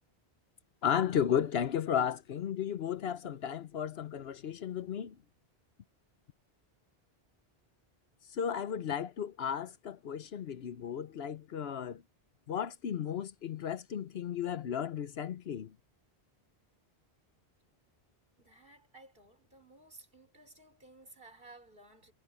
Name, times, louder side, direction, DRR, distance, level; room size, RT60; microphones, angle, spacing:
voice 1, 0.8-5.2 8.3-12.0 12.5-15.7, left 8 dB, 75° left, 1.0 m, -34 dB
voice 2, 18.4-22.1, right 2 dB, 60° right, 5.3 m, -56 dB
omnidirectional pair, 1.1 m